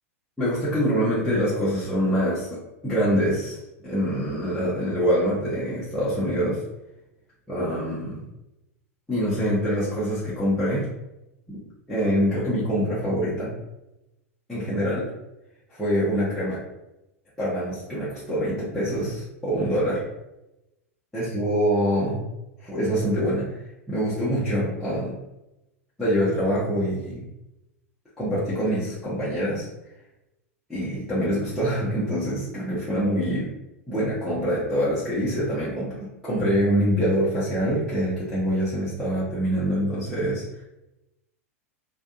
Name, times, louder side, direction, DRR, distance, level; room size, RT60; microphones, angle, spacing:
voice 1, 0.4-6.6 7.5-8.2 9.1-10.9 11.5-11.6 11.9-13.5 14.5-15.1 15.7-16.6 17.4-20.0 21.1-22.2 22.6-25.1 26.0-27.2 28.2-29.7 30.7-33.5 33.9-40.6, equal, 5° left, -11 dB, 0.8 m, -25 dB
2.6 x 2.3 x 2.4 m, 0.94 s
figure-of-eight pair, 90°, 8 cm